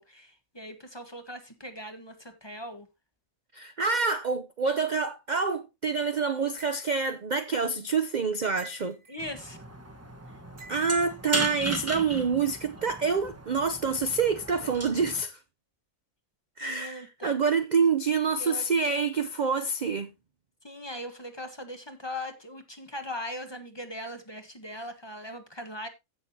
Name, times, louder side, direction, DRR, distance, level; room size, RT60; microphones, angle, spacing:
voice 1, 0.0-2.9 9.1-9.6 16.6-17.3 18.4-19.0 20.6-25.9, left 1 dB, 20° left, 1.4 m, -40 dB
voice 2, 3.5-9.0 10.7-15.4 16.6-20.1, right 5 dB, 45° right, 0.7 m, -27 dB
sound 1, 6.6-7.2 8.6-9.2 10.6-11.2, right 4 dB, 70° right, 2.2 m, -49 dB
sound 2, 9.2-15.2, right 2 dB, 10° right, 1.1 m, -36 dB
15.5 x 6.6 x 2.8 m
omnidirectional pair, 1.4 m